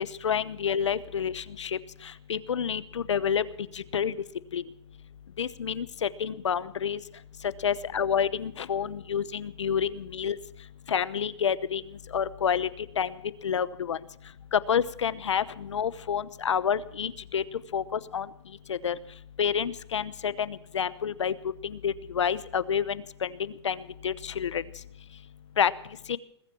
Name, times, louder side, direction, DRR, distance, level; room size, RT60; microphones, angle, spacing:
voice 1, 0.0-1.8 2.3-3.4 3.7-4.1 4.5-4.6 5.4-7.0 7.6-10.3 10.9-11.8 12.1-12.7 13.0-13.1 13.4-14.0 14.5-17.4 17.7-18.3 18.7-19.0 19.4-21.3 21.6-24.6 25.6-25.7 26.1-26.2, left 7 dB, 90° left, 16 dB, 0.9 m, -28 dB
20.5 x 7.5 x 8.6 m, 0.71 s
hypercardioid pair, 150°, 15 cm